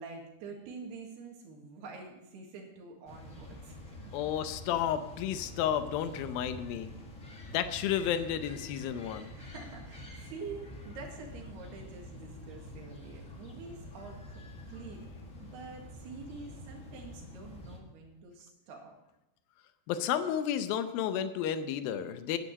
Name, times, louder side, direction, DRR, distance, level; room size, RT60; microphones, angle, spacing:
voice 1, 0.0-4.1 9.3-15.0 15.4-18.9, right 4 dB, 80° right, 2 dB, 4.0 m, -47 dB
sound 1, 3.1-17.8, left 1 dB, 45° left, 1.0 m, -47 dB
voice 2, 4.1-6.9 7.5-9.3 19.9-22.4, left 9 dB, 75° left, 10 dB, 2.4 m, -32 dB
11.0 x 9.9 x 6.4 m, 0.94 s
omnidirectional pair, 4.6 m